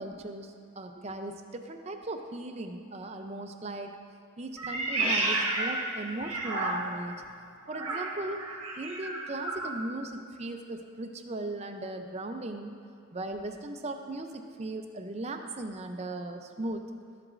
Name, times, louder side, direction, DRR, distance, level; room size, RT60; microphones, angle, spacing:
voice 1, 0.0-3.9 4.4-7.2 7.7-8.5 8.8-12.7 13.1-16.8, right 2 dB, 30° right, 6 dB, 0.4 m, -38 dB
Meow, 4.6-7.1 7.7-9.7, right 2 dB, 85° right, 1.1 m, -31 dB
12.5 x 7.8 x 2.5 m, 2.3 s
head